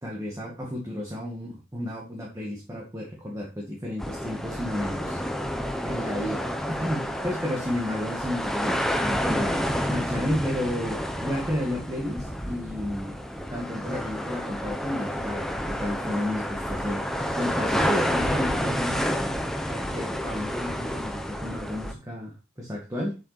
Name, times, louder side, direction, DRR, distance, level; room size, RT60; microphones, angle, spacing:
voice 1, 0.0-5.2 5.8-6.5 6.8-13.2 13.5-19.2 19.7-23.2, left 1 dB, 15° right, -3 dB, 2.1 m, -32 dB
sound 1, 4.0-21.9, equal, ahead, 1.0 m, -29 dB
8.0 x 7.7 x 4.2 m, 0.29 s
head